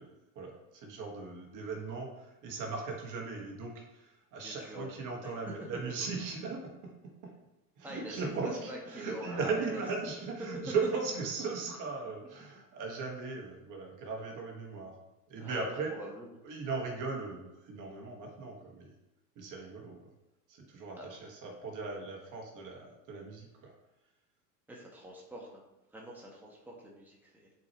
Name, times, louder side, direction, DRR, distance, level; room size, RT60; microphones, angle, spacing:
voice 1, 0.0-7.3 7.8-14.9 15.3-16.1 16.4-18.9 19.4-20.0 20.5-23.7, right 4 dB, 40° right, 0 dB, 1.7 m, -38 dB
voice 2, 4.4-4.9 5.2-5.3 5.7-5.8 7.8-9.8 15.4-16.3 21.0-21.1 24.7-25.6 25.9-27.5, right 1 dB, 5° right, -3 dB, 1.5 m, -45 dB
10.0 x 4.6 x 3.1 m, 0.96 s
hypercardioid pair, 95°, 48 cm